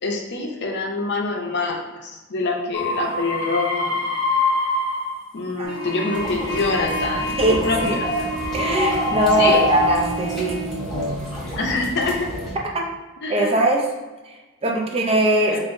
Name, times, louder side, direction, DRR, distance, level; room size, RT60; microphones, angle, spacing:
voice 1, 0.0-4.0 5.3-8.3 9.4-9.6 11.6-12.3 13.2-13.6 15.5-15.6, left 3 dB, 55° left, 1 dB, 0.6 m, -25 dB
sound 1, 2.7-5.3 5.6-10.2 10.9-11.5, left 2 dB, 65° right, 1.1 m, -27 dB
Trumpet, 5.6-10.7, right 4 dB, 25° left, 0.9 m, -32 dB
voice 2, 5.6-6.1 7.4-8.0 8.5-10.7 12.7-12.9 13.3-13.9 14.2-15.6, right 1 dB, 30° right, 0 dB, 0.5 m, -21 dB
sound 2, 6.1-12.5, left 1 dB, ahead, 1.1 m, -27 dB
5.2 x 2.5 x 2.6 m, 1.2 s
head